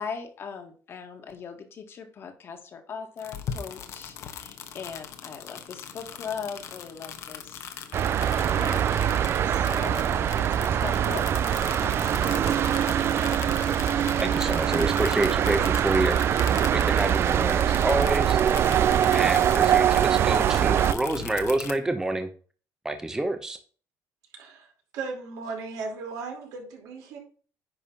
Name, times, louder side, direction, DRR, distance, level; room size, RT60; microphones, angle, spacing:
voice 1, 0.0-9.0 9.4-11.2 11.8-12.7, left 6 dB, 45° left, 5 dB, 1.7 m, -40 dB
sound 1, 3.2-21.7, left 8 dB, 60° left, 1.1 m, -40 dB
sound 2, 7.9-20.9, right 9 dB, 45° right, 0.4 m, -23 dB
voice 2, 14.2-16.2 16.7-18.4 19.1-22.3 22.8-23.6, right 2 dB, 10° right, 6 dB, 0.8 m, -28 dB
voice 3, 24.3-24.7 24.9-27.2, right 4 dB, 80° right, 2 dB, 2.8 m, -36 dB
10.0 x 3.5 x 5.6 m, 0.41 s
cardioid pair, 125°, 6 cm